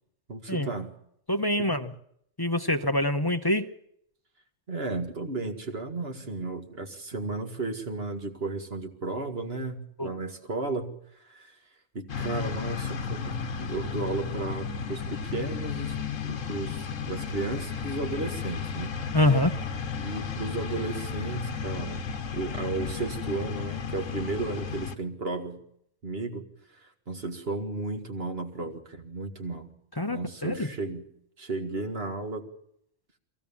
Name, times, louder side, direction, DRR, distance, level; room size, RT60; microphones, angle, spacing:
voice 1, 0.3-0.9 1.6-1.7 4.7-10.9 11.2-11.6 11.9-16.0 16.2-19.0 20.0-22.1 22.3-25.6 26.0-26.4 26.7-29.7 30.1-31.0 31.4-32.5, right 3 dB, 50° right, 5 dB, 2.3 m, -34 dB
voice 2, 1.3-1.9 2.4-3.7 10.0-10.1 19.1-19.5 30.0-30.7, left 1 dB, 20° left, 7 dB, 0.7 m, -25 dB
sound 1, 12.1-25.0, left 6 dB, 70° left, 1.5 m, -34 dB
23.0 x 16.5 x 7.2 m, 0.71 s
omnidirectional pair, 1.4 m